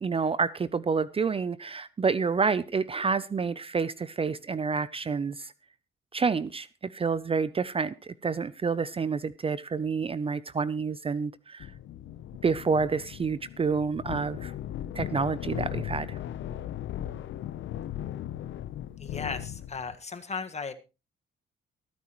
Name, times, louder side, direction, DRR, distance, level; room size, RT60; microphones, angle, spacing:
voice 1, 0.0-5.5 6.1-11.7 12.4-14.5 14.9-16.2, right 5 dB, 30° right, 17 dB, 0.6 m, -28 dB
sound 1, 11.6-20.0, left 11 dB, 75° left, 0.8 m, -37 dB
voice 2, 19.0-20.7, left 5 dB, 35° left, 8 dB, 1.6 m, -36 dB
23.5 x 9.5 x 3.1 m, 0.30 s
cardioid pair, 90°, 20 cm